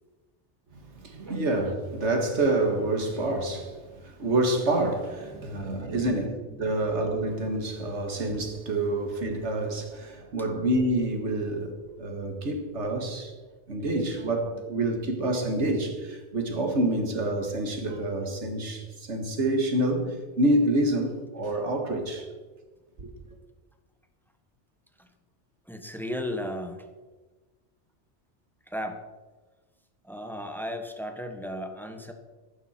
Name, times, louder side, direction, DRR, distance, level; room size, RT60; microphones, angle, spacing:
voice 1, 0.7-13.3 13.7-22.3 23.0-23.1, right 1 dB, 75° right, 2.1 m, -27 dB
voice 2, 5.3-6.2 6.5-6.8 25.0-25.1 25.6-26.9 28.7-29.1 30.0-32.1, equal, ahead, 1.1 m, -36 dB
14.5 x 11.5 x 4.4 m
omnidirectional pair, 1.2 m